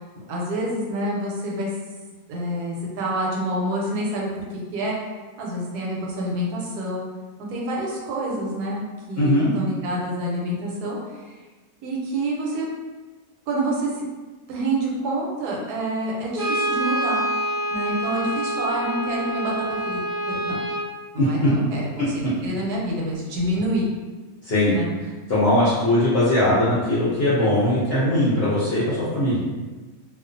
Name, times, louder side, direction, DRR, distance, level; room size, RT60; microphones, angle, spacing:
voice 1, 0.3-1.7 2.3-4.3 4.7-5.0 5.4-7.0 7.4-11.4 11.8-12.7 13.5-13.9 14.5-17.2 17.7-20.0 20.3-20.6 21.1-23.9 24.7-24.9, right 1 dB, 80° right, -3 dB, 1.1 m, -27 dB
voice 2, 9.2-9.5 21.2-21.3 24.4-24.7 25.3-29.4, left 1 dB, 60° left, -9 dB, 0.6 m, -20 dB
Brass instrument, 16.3-20.9, right 1 dB, 65° right, 0.5 m, -26 dB
2.4 x 2.3 x 2.5 m, 1.3 s
omnidirectional pair, 1.7 m